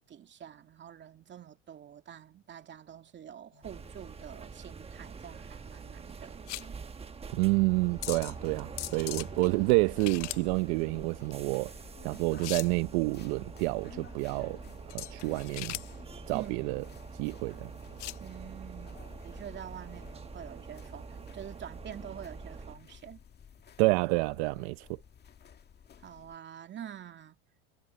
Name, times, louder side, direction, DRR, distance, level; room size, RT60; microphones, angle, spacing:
voice 1, 0.0-6.8 16.3-17.2 18.2-23.2 26.0-27.4, right 10 dB, 30° right, 2.4 m, -47 dB
sound 1, 3.5-18.2, left 18 dB, 90° left, 0.7 m, -43 dB
sound 2, 3.6-22.8, right 5 dB, 15° right, 1.2 m, -46 dB
voice 2, 7.3-11.7 12.0-14.6 14.9-15.8 16.3-16.8 17.2-17.7 23.8-24.9, right 25 dB, 65° right, 0.8 m, -28 dB
sound 3, 7.7-26.4, left 8 dB, 30° left, 2.0 m, -54 dB
supercardioid pair, 110°, 34 cm